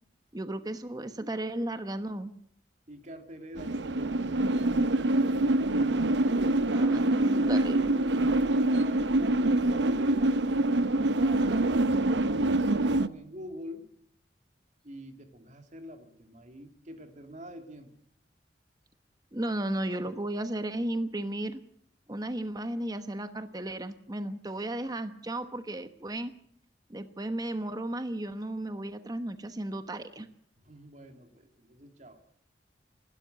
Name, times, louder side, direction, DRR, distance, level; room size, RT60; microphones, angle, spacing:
voice 1, 0.3-2.3 6.7-7.9 19.3-21.6 22.1-26.3 26.9-30.3, right 1 dB, 20° right, 10 dB, 1.1 m, -34 dB
voice 2, 2.9-5.7 6.2-6.7 7.0-11.7 12.1-13.9 14.8-17.9 30.6-32.2, equal, 45° right, 6 dB, 2.9 m, -46 dB
sound 1, 3.6-13.1, right 2 dB, 85° right, 0.8 m, -25 dB
27.5 x 12.5 x 8.2 m, 0.65 s
head